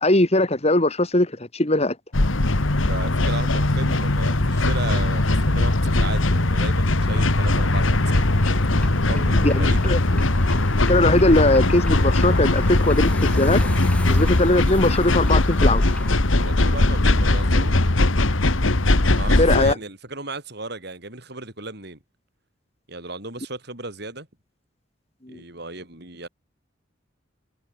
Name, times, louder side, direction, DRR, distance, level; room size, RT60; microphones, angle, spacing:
voice 1, 0.0-1.9 9.4-10.0 10.9-13.6 14.1-15.8 19.4-19.7 25.3-25.4, left 1 dB, 35° left, 2.6 m, -20 dB
sound 1, 2.1-19.7, left 2 dB, 85° left, 1.8 m, -20 dB
voice 2, 2.9-8.3 8.9-9.9 16.3-18.0 19.1-22.0 22.9-24.3 25.3-26.3, right 2 dB, 55° right, 6.9 m, -35 dB
sound 2, 7.9-16.2, equal, 5° left, 5.9 m, -35 dB
head